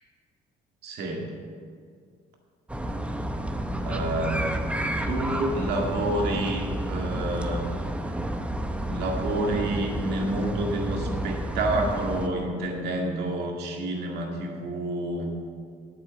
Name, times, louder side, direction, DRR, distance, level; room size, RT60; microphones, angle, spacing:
voice 1, 0.8-1.3 3.8-4.6 5.1-7.7 8.2-8.3 8.8-15.3, right 2 dB, 75° right, 1 dB, 2.0 m, -29 dB
sound 1, 2.7-12.3, right 1 dB, 5° right, 0.7 m, -30 dB
9.0 x 8.3 x 6.8 m, 2.1 s
cardioid pair, 110°, 17 cm